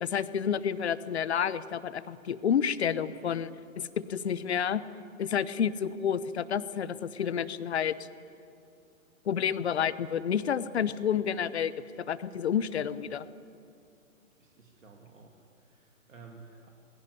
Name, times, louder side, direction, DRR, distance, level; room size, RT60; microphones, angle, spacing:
voice 1, 0.0-4.8 5.2-7.9 9.3-13.2, left 8 dB, 50° left, 16 dB, 1.0 m, -30 dB
voice 2, 14.4-16.7, right 4 dB, 65° right, 1 dB, 2.6 m, -53 dB
21.0 x 17.0 x 9.9 m, 2.6 s
figure-of-eight pair, 130°, 42 cm